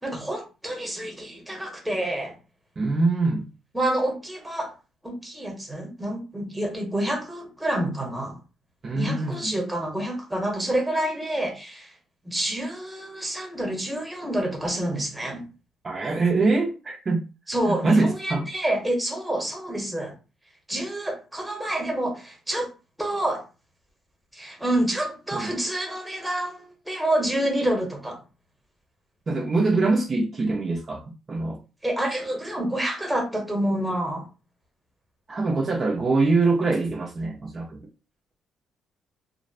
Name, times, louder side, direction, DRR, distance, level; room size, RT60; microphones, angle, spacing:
voice 1, 0.0-2.4 3.7-4.7 5.0-8.4 8.9-11.9 12.2-15.5 17.5-20.1 20.7-22.7 23.0-23.4 24.3-28.2 31.8-34.3, right 1 dB, 5° right, 0.9 m, -28 dB
voice 2, 2.8-3.5 8.8-9.6 15.8-17.2 17.7-18.5 25.3-25.5 29.3-31.6 35.3-37.9, right 3 dB, 40° right, 0.5 m, -24 dB
2.5 x 2.0 x 2.6 m
cardioid pair, 90°, 0 cm